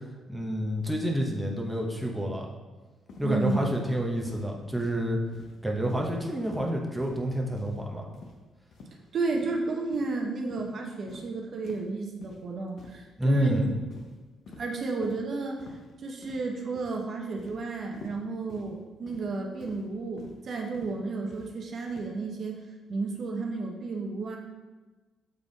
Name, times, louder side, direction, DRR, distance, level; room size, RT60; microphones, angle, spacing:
voice 1, 0.3-2.5 3.2-5.2 5.6-8.1 13.2-13.7, equal, 5° right, -1 dB, 1.0 m, -28 dB
sound 1, 3.1-3.3 3.6-3.9 4.2-4.4 4.8-5.0 5.3-5.6 5.9-6.1 6.4-6.7 7.0-7.2 7.6-7.8 8.1-8.4 8.7-8.9 9.3-9.5 9.9-10.1 10.5-10.7 11.1-11.3 11.6-11.9 12.2-12.4 12.8-13.1 13.3-13.5 13.9-14.2 14.5-14.7 15.0-15.2 15.6-15.9 16.2-16.5 16.8-17.0 17.4-17.6 17.9-18.2 18.5-18.7 19.1-19.3 19.6-19.8 20.2-20.4 20.7-20.9 21.3-21.5 21.9-22.1, left 3 dB, 65° left, 0.9 m, -47 dB
voice 2, 3.2-3.8 9.1-13.7 14.6-22.6 22.9-24.4, right 3 dB, 55° right, 1 dB, 0.9 m, -32 dB
6.8 x 3.6 x 4.0 m, 1.2 s
cardioid pair, 90°, 0 cm